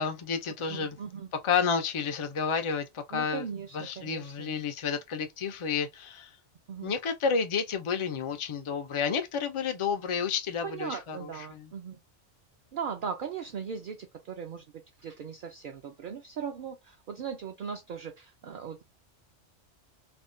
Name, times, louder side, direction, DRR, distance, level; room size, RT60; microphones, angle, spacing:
voice 1, 0.0-1.0 1.4-3.4 3.7-6.3 6.8-11.7, left 6 dB, 55° left, 0.3 m, -30 dB
voice 2, 0.7-1.3 3.1-4.5 6.7-6.9 10.6-12.0 12.7-14.6 15.0-18.8, right 6 dB, 60° right, 0.6 m, -38 dB
3.4 x 2.1 x 2.5 m
omnidirectional pair, 1.2 m